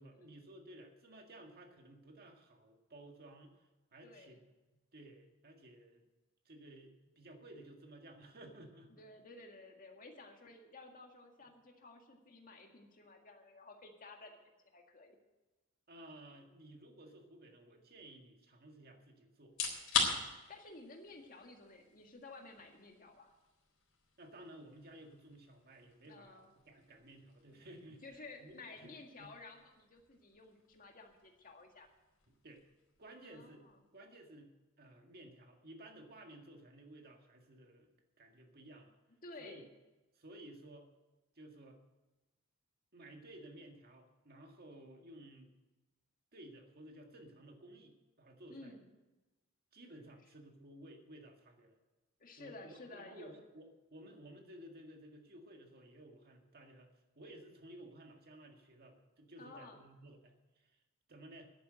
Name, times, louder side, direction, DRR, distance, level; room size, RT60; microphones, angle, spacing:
voice 1, 0.0-4.4 4.9-6.1 6.4-9.0 15.9-19.6 24.2-29.3 32.3-32.7 33.0-33.6 33.9-37.9 38.2-39.0 39.4-39.6 40.1-40.9 41.3-41.8 42.9-45.5 46.3-48.7 49.7-51.8 52.4-56.9 57.1-60.8 61.1-61.5, right 1 dB, 50° right, 3 dB, 1.9 m, -55 dB
voice 2, 4.0-4.4 8.9-14.4 14.7-15.2 20.5-23.3 26.1-26.5 28.0-31.9 33.2-33.7 39.2-39.7 48.5-48.9 52.2-53.3 59.4-59.8, left 3 dB, 40° left, 3 dB, 1.9 m, -54 dB
sound 1, 19.4-34.3, left 5 dB, 80° left, 3.8 m, -44 dB
11.0 x 9.3 x 7.7 m, 1.1 s
head